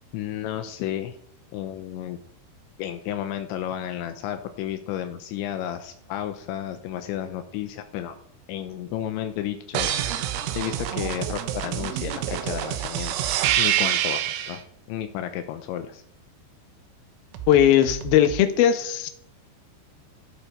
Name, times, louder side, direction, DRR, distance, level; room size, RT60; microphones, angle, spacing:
voice 1, 0.1-1.2 1.5-2.2 2.8-8.2 8.5-9.9 10.6-13.1 13.6-14.6 14.9-16.0, left 11 dB, 80° left, 8 dB, 3.0 m, -32 dB
sound 1, 9.7-14.6 17.3-18.4, right 11 dB, 80° right, 3.5 m, -27 dB
voice 2, 17.5-19.1, left 10 dB, 65° left, 8 dB, 2.8 m, -18 dB
14.0 x 12.5 x 6.0 m, 0.69 s
omnidirectional pair, 5.6 m